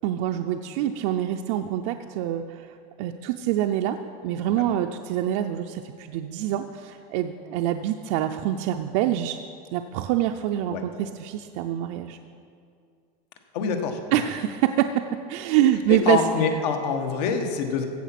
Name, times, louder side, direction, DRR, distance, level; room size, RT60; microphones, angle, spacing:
voice 1, 0.0-2.7 3.0-4.0 4.2-9.4 9.7-12.2 14.1-15.0 15.3-16.5, right 11 dB, 50° right, 5 dB, 0.5 m, -25 dB
voice 2, 13.5-14.0 15.9-17.9, left 6 dB, 80° left, 5 dB, 1.5 m, -25 dB
15.5 x 7.2 x 5.9 m, 2.3 s
cardioid pair, 175°, 21 cm